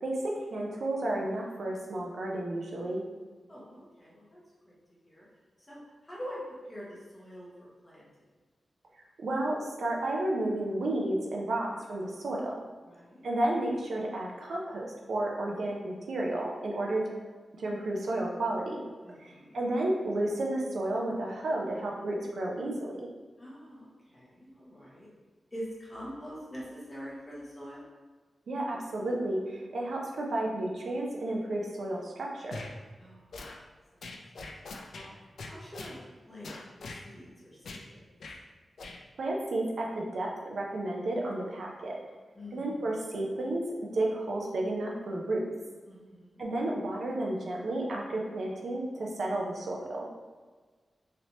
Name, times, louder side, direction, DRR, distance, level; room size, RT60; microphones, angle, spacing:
voice 1, 0.0-3.0 9.2-12.5 13.2-17.0 17.6-18.8 19.2-23.1 28.5-32.6 39.2-42.0 42.5-43.7 43.9-45.4 46.4-50.1, right 1 dB, 65° right, -2 dB, 0.5 m, -32 dB
voice 2, 3.5-4.4 4.6-4.7 5.1-5.3 5.7-6.4 6.7-7.5 7.8-8.1 12.8-13.2 19.0-19.6 23.4-25.1 25.5-27.8 33.0-33.4 33.9-34.2 34.9-36.0 36.3-36.5 37.0-38.0 42.3-42.8 45.8-46.4, equal, 20° left, -6 dB, 1.0 m, -45 dB
sound 1, 32.5-32.7 33.3-33.6 34.0-35.1 35.4-36.0 36.4-37.0 37.6-37.9 38.2-38.4 38.8-39.0, left 3 dB, 75° left, 0.3 m, -42 dB
3.2 x 2.8 x 2.7 m, 1.4 s
wide cardioid pair, 130°, 0 cm